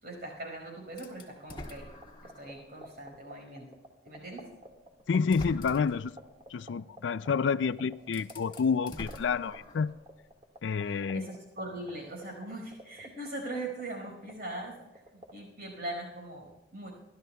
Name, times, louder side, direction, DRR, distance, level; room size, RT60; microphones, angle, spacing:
voice 1, 0.0-1.9 2.2-3.7 4.0-4.5 10.8-14.8 15.1-16.9, right 1 dB, 55° right, 5.1 m, -41 dB
sound 1, 1.0-2.6 3.1-3.2 4.5-4.6 5.1-6.1 7.5-7.6 8.0-10.0, left 1 dB, 25° left, 1.7 m, -45 dB
sound 2, 1.9-15.3, right 1 dB, 30° right, 1.8 m, -46 dB
voice 2, 5.1-6.1 6.5-9.9 10.6-11.2, left 5 dB, 70° left, 0.4 m, -29 dB
29.0 x 12.5 x 2.3 m
head